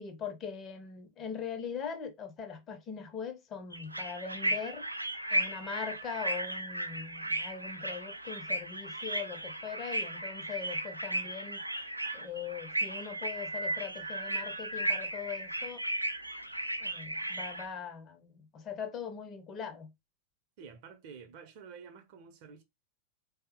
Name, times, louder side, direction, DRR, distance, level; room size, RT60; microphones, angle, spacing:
voice 1, 0.0-4.9 5.3-11.7 12.1-15.8 16.8-19.9, left 6 dB, 30° left, 0.6 m, -41 dB
sound 1, 3.7-17.7, right 1 dB, 85° right, 0.3 m, -35 dB
voice 2, 20.6-22.6, right 6 dB, 45° right, 0.6 m, -50 dB
3.4 x 2.0 x 2.8 m
figure-of-eight pair, 90°, 0 cm